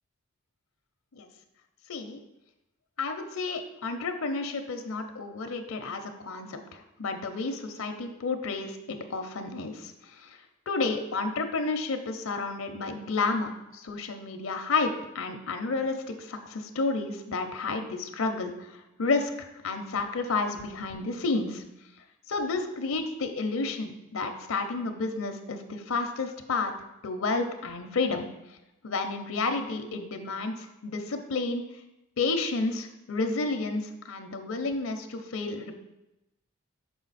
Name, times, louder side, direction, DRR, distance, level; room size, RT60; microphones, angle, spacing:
voice 1, 1.9-2.2 3.0-10.4 10.7-21.6 22.3-26.7 27.0-28.3 28.8-31.6 32.2-35.7, left 3 dB, 75° left, 7 dB, 0.6 m, -31 dB
6.3 x 4.6 x 4.0 m, 0.95 s
head